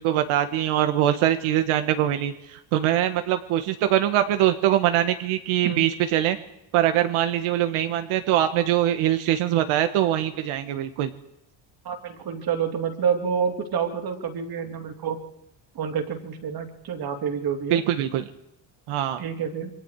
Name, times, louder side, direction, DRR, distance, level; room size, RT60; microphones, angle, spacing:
voice 1, 0.0-6.4 6.7-11.1 17.7-18.2 18.9-19.2, right 12 dB, 90° right, 8 dB, 1.8 m, -23 dB
voice 2, 11.8-15.2 15.7-17.8 19.2-19.7, right 7 dB, 45° right, 5 dB, 3.4 m, -28 dB
28.0 x 24.5 x 4.9 m, 0.80 s
cardioid pair, 155°, 48 cm